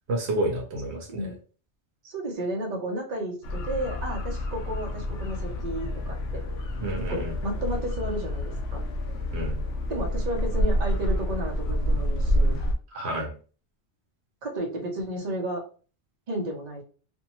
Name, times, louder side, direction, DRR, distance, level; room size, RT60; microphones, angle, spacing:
voice 1, 0.1-1.3 6.8-7.3 9.3-9.6 12.9-13.3, right 1 dB, 70° right, 1 dB, 0.9 m, -30 dB
voice 2, 2.0-6.4 7.1-8.8 9.9-12.6 14.4-15.6 16.3-16.8, right 1 dB, 45° right, 0 dB, 0.7 m, -32 dB
sound 1, 3.4-12.7, equal, 65° left, 0.8 m, -28 dB
2.6 x 2.2 x 2.9 m, 0.38 s
omnidirectional pair, 1.2 m